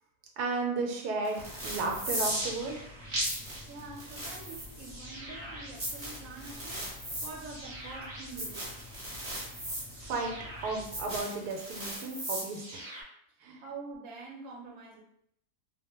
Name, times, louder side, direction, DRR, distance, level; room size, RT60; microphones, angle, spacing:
voice 1, 0.4-2.9 9.4-9.5 10.0-12.9 13.4-13.6, right 3 dB, 85° right, 1 dB, 1.1 m, -34 dB
sound 1, 1.2-13.0, right 1 dB, 30° right, 0.8 m, -38 dB
sound 2, 1.4-11.2, left 2 dB, 10° right, 1.1 m, -50 dB
voice 2, 3.7-8.7 13.6-15.0, right 3 dB, 60° right, -2 dB, 0.9 m, -46 dB
2.5 x 2.1 x 2.8 m, 0.71 s
omnidirectional pair, 1.7 m